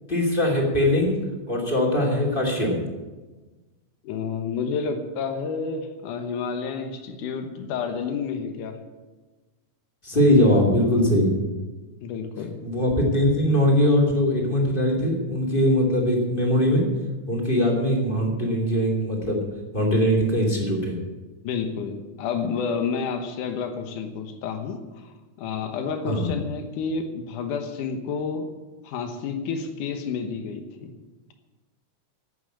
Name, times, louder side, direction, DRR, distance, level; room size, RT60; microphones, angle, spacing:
voice 1, 0.1-1.2 1.5-2.8 10.0-11.3 12.6-16.8 17.3-19.4 19.7-21.0 26.1-26.3, left 1 dB, 15° left, -1 dB, 2.7 m, -21 dB
voice 2, 4.0-8.8 12.0-12.6 21.4-28.5 28.8-30.9, left 5 dB, 85° left, 6 dB, 2.7 m, -30 dB
11.5 x 8.6 x 8.6 m, 1.2 s
omnidirectional pair, 3.5 m